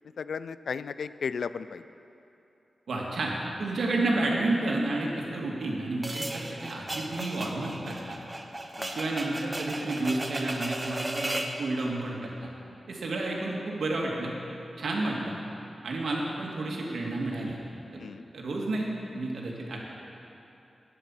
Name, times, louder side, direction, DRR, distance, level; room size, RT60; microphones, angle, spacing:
voice 1, 0.2-1.8 8.8-9.0 18.0-18.2, left 6 dB, 85° left, 14 dB, 0.3 m, -34 dB
voice 2, 2.9-3.3 3.6-8.2 8.9-12.3 12.9-14.3 14.8-15.4 15.8-17.6 17.9-18.0 18.3-18.9 19.1-19.9, right 2 dB, 85° right, -2 dB, 2.2 m, -30 dB
sound 1, 6.0-11.6, right 1 dB, 15° right, 0.8 m, -35 dB
11.5 x 10.0 x 7.3 m, 2.9 s
wide cardioid pair, 160°, 0 cm